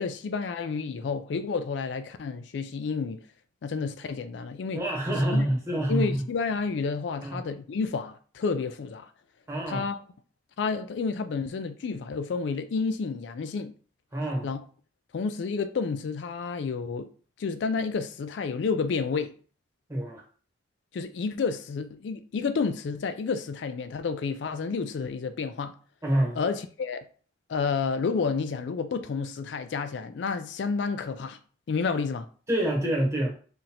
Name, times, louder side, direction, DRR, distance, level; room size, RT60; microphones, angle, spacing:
voice 1, 0.0-3.2 3.6-4.8 5.3-5.5 5.9-9.1 9.7-10.0 10.6-13.7 14.4-14.6 15.1-17.1 17.4-19.3 20.9-25.7 26.4-27.0 27.5-31.4 31.7-32.3, left 5 dB, 70° left, 0.4 m, -30 dB
voice 2, 4.7-6.2 7.2-7.4 9.5-9.8 14.1-14.5 19.9-20.2 26.0-26.4 32.5-33.3, right 1 dB, 15° right, 1.1 m, -26 dB
5.7 x 2.6 x 2.9 m
head